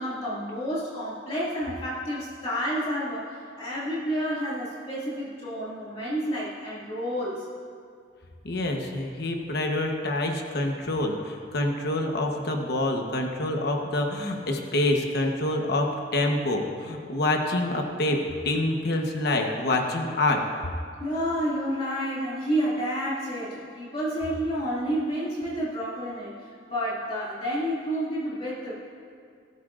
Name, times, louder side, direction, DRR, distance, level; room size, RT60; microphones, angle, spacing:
voice 1, 0.0-7.5 21.0-26.3 26.7-28.7, equal, 30° left, -8 dB, 2.4 m, -30 dB
voice 2, 8.4-20.4, left 1 dB, 60° left, 2 dB, 1.1 m, -26 dB
19.0 x 12.5 x 2.6 m, 2.2 s
head